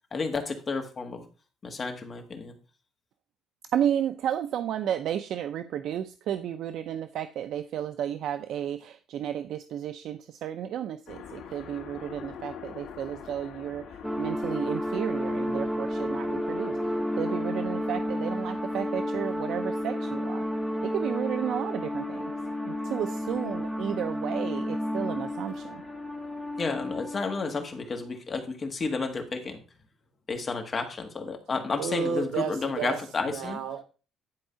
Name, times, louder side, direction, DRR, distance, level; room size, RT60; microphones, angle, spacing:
voice 1, 0.1-1.2 1.6-2.5 26.6-29.6 30.3-33.6, left 4 dB, 25° left, 5 dB, 1.5 m, -31 dB
voice 2, 3.7-16.8 17.2-20.4 20.8-22.3 22.6-25.8, right 10 dB, 50° right, 9 dB, 0.5 m, -32 dB
sound 1, 11.1-26.9, left 7 dB, 55° left, 2.1 m, -47 dB
sound 2, 14.0-27.7, equal, ahead, 0.7 m, -31 dB
voice 3, 31.8-33.8, right 6 dB, 70° right, 7 dB, 2.1 m, -32 dB
10.5 x 4.7 x 5.6 m, 0.36 s
cardioid pair, 175°, 0 cm